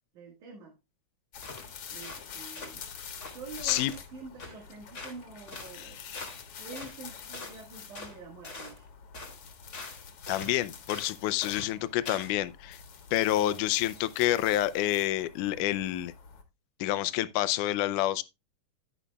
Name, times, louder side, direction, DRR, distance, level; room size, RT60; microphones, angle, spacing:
voice 1, 0.1-0.8 1.9-6.0 6.6-8.9, right 4 dB, 75° right, 3.1 m, -47 dB
sound 1, 1.3-16.4, left 6 dB, 55° left, 2.1 m, -47 dB
sound 2, 1.4-1.7 2.0-2.3 2.5-2.8 3.2-4.0 4.4-4.6 4.9-5.2 5.5-5.7 6.1-6.4 6.8-7.0 7.3-7.6 7.9-8.2 8.4-8.8 9.1-9.4 9.7-10.0 10.3-10.5 10.9-11.2 11.4-11.7 12.1-12.4, left 3 dB, 30° left, 1.8 m, -42 dB
voice 2, 5.7-6.3 10.3-12.8 13.1-16.1 16.8-18.2, left 14 dB, 90° left, 2.1 m, -28 dB
10.5 x 10.0 x 2.3 m
omnidirectional pair, 3.5 m